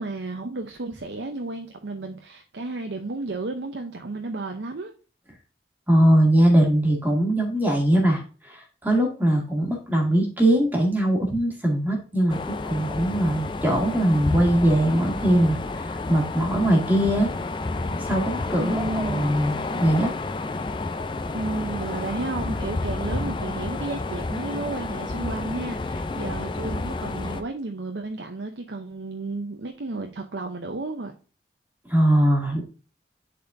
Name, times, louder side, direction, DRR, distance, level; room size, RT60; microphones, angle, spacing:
voice 1, 0.0-4.9 18.6-19.2 21.3-31.1, right 2 dB, 75° right, 0.7 m, -32 dB
voice 2, 5.9-17.3 18.0-20.1 31.9-32.6, right 1 dB, 10° right, 2.0 m, -21 dB
sound 1, 12.3-27.4, left 2 dB, 25° left, 0.4 m, -30 dB
10.5 x 4.3 x 2.6 m
head